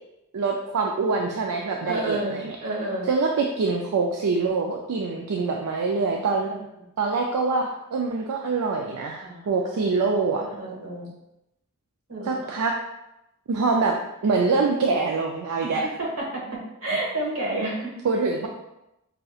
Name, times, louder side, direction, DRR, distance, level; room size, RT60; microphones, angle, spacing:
voice 1, 0.3-2.6 3.1-6.5 7.0-10.4 12.2-12.7 13.5-13.9 14.2-15.9 18.0-18.5, right 4 dB, 85° right, 1 dB, 0.4 m, -24 dB
voice 2, 1.8-2.3 2.6-3.1 6.5-6.6 9.2-9.5 9.7-9.8 10.4-11.1 12.1-12.5 15.6-16.4 16.8-17.9 18.4-18.5, right 1 dB, 65° right, -4 dB, 1.4 m, -30 dB
5.1 x 2.7 x 2.3 m, 0.87 s
head